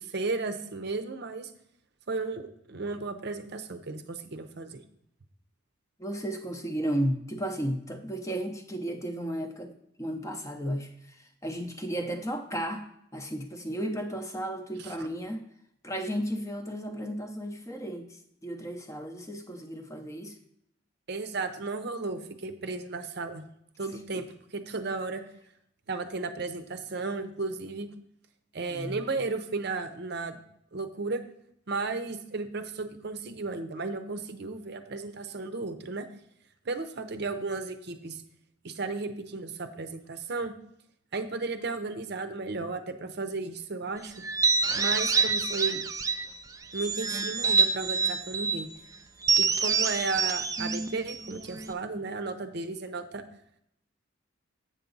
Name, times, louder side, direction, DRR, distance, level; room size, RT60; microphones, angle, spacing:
voice 1, 0.0-1.5 2.1-4.8 14.8-14.9 21.1-23.4 23.8-24.3 24.5-25.2 25.9-27.9 28.5-30.4 30.7-31.2 31.7-36.1 36.7-38.2 38.6-40.5 41.1-44.1 44.7-45.8 46.7-48.7 49.4-53.2, right 3 dB, 55° right, 8 dB, 0.6 m, -34 dB
voice 2, 6.0-9.7 10.0-15.4 15.8-20.4 24.1-24.2 28.7-29.0, equal, 15° left, 5 dB, 0.6 m, -34 dB
sound 1, 44.2-46.3 46.7-48.6 49.2-51.7, right 5 dB, 15° right, 0.3 m, -27 dB
7.8 x 6.9 x 3.9 m, 0.73 s
head